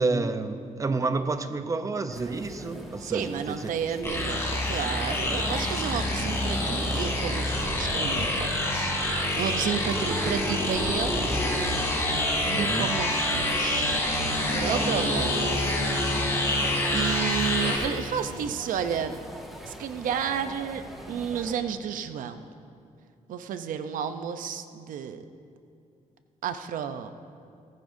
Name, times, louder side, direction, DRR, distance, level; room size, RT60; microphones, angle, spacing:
voice 1, 0.0-3.7 4.0-4.3 12.5-12.9 17.6-17.8, right 3 dB, 25° right, 9 dB, 0.7 m, -29 dB
sound 1, 2.1-21.6, equal, ahead, 1.7 m, -41 dB
voice 2, 3.0-11.5 12.4-14.1 14.5-15.6 16.3-16.6 16.9-19.2 19.7-22.4 23.3-25.3 26.4-27.1, right 8 dB, 80° right, 9 dB, 0.7 m, -32 dB
sound 2, 4.0-17.8, left 1 dB, 20° left, 2.9 m, -27 dB
18.5 x 14.5 x 2.7 m, 2.4 s
cardioid pair, 110°, 14 cm